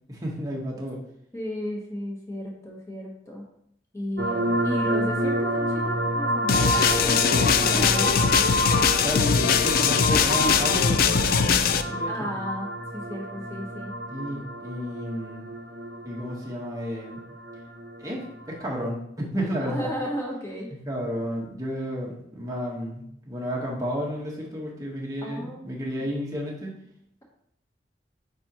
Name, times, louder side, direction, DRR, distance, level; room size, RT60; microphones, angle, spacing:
voice 1, 0.1-1.0 7.2-7.8 9.0-12.3 14.1-15.5 16.0-17.2 18.0-19.9 20.8-26.7, equal, 20° right, -3 dB, 1.3 m, -32 dB
voice 2, 1.3-3.5 3.9-6.5 7.0-8.4 12.1-13.9 19.6-20.7 25.2-25.7, equal, 15° left, -1 dB, 1.1 m, -34 dB
sound 1, 4.2-18.8, right 1 dB, 65° right, 0.8 m, -29 dB
sound 2, 6.5-11.8, left 6 dB, 55° left, 0.4 m, -21 dB
8.9 x 4.1 x 3.0 m, 0.73 s
head